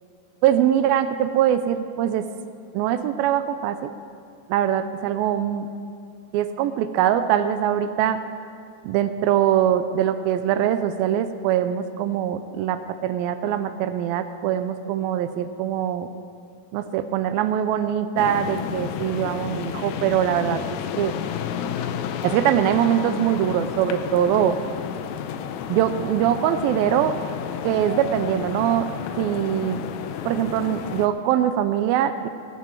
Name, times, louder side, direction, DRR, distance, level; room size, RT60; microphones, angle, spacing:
voice 1, 0.4-2.3 2.7-3.9 4.5-5.7 6.3-8.2 8.8-16.1 16.7-20.6 21.0-21.2 22.2-24.6 25.7-27.2 27.6-28.9 29.2-29.8 30.3-32.3, right 10 dB, 85° right, 11 dB, 2.4 m, -22 dB
sound 1, 18.2-31.1, left 8 dB, 85° left, 2.5 m, -31 dB
17.5 x 12.0 x 4.6 m, 2.6 s
omnidirectional pair, 4.2 m